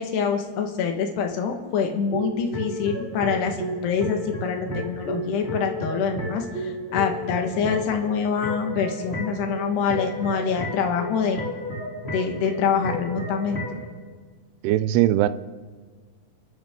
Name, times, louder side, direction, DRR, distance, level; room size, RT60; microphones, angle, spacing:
voice 1, 0.0-11.5 12.1-13.8, left 6 dB, 70° left, 4 dB, 3.5 m, -25 dB
sound 1, 2.1-13.9, equal, 15° left, 2.5 m, -32 dB
voice 2, 14.6-15.3, right 14 dB, 85° right, 13 dB, 2.3 m, -19 dB
29.5 x 13.0 x 3.8 m, 1.5 s
omnidirectional pair, 5.2 m